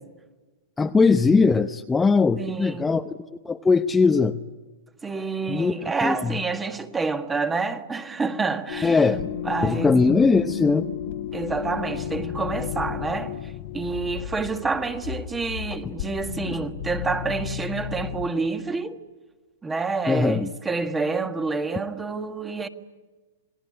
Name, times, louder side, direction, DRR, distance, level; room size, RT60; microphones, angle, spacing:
voice 1, 0.8-3.1 3.4-4.4 5.5-5.7 6.0-6.3 8.8-9.3 9.6-10.9 15.8-15.9 16.4-16.6 20.1-20.5, left 4 dB, 10° left, 0.8 m, -20 dB
voice 2, 2.4-2.9 5.0-9.1 9.4-9.9 11.3-19.0 19.6-22.7, right 4 dB, 15° right, 1.6 m, -28 dB
sound 1, 8.7-18.3, left 10 dB, 60° left, 1.5 m, -33 dB
28.0 x 19.0 x 9.8 m
hypercardioid pair, 125°, 0 cm